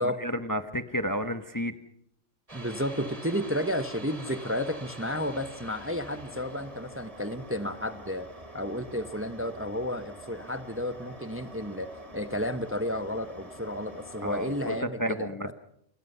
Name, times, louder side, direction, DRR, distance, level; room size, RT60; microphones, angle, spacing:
voice 1, 0.0-1.7 14.2-15.5, equal, 15° left, 9 dB, 0.9 m, -31 dB
voice 2, 2.5-8.3 8.5-15.5, equal, 10° right, 10 dB, 0.9 m, -32 dB
sound 1, 2.5-14.8, right 1 dB, 25° right, 3.0 m, -46 dB
29.0 x 20.5 x 5.6 m, 0.70 s
omnidirectional pair, 1.3 m